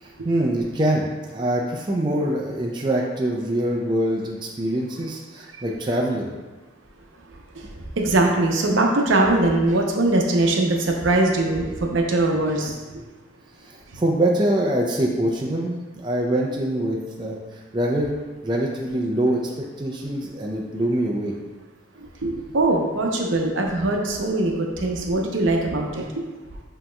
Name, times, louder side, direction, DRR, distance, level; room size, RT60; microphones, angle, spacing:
voice 1, 0.0-6.3 13.6-18.1 18.4-19.4 19.8-21.3, right 1 dB, 25° right, -1 dB, 0.4 m, -24 dB
voice 2, 8.0-12.7 22.2-26.0, right 2 dB, 85° right, 1 dB, 0.6 m, -21 dB
7.4 x 2.9 x 2.2 m, 1.2 s
head